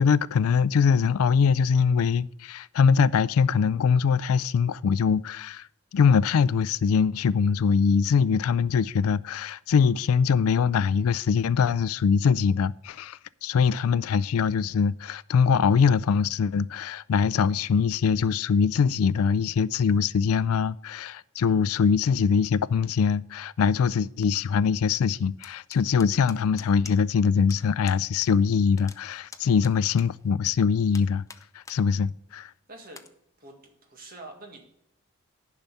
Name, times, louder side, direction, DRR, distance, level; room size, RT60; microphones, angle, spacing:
voice 1, 0.0-5.7 5.9-31.2 31.7-32.5, left 6 dB, 75° left, 0.3 m, -23 dB
sound 1, 25.4-27.2 27.5-27.6 27.9-28.3 28.6-30.5 30.9-31.8 32.2-32.3 32.9-33.1, left 5 dB, 15° left, 0.5 m, -46 dB
voice 2, 32.7-33.0 33.4-33.6 33.9-34.6, right 2 dB, 40° right, 1.9 m, -44 dB
10.5 x 5.5 x 6.9 m
head